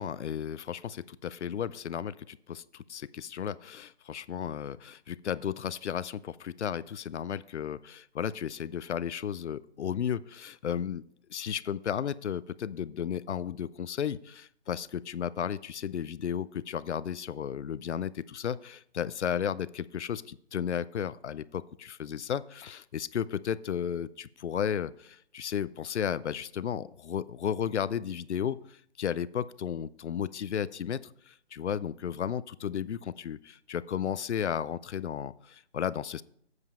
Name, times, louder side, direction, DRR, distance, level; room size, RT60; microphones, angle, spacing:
voice 1, 0.0-11.0 11.3-36.2, left 8 dB, 80° left, 18 dB, 0.5 m, -34 dB
7.9 x 7.3 x 4.3 m, 0.67 s
hypercardioid pair, 170°, 34 cm